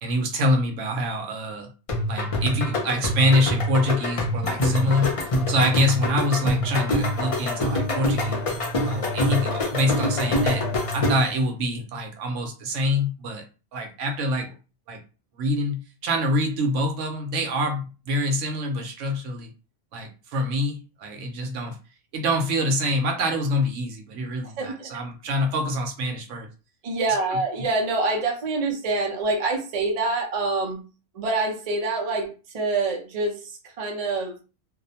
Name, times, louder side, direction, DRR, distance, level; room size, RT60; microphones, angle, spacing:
voice 1, 0.0-1.7 2.1-5.1 5.5-8.5 8.8-10.7 10.9-13.4 13.7-14.5 14.9-15.0 15.4-19.5 19.9-21.8 22.1-26.5, left 1 dB, 75° right, 3 dB, 0.9 m, -25 dB
sound 1, 1.9-11.4, left 1 dB, 50° left, 0.4 m, -25 dB
voice 2, 24.4-24.9 26.8-30.8 31.1-33.4 33.8-34.4, right 3 dB, 45° right, 1 dB, 0.5 m, -26 dB
2.5 x 2.0 x 2.7 m, 0.33 s
omnidirectional pair, 1.3 m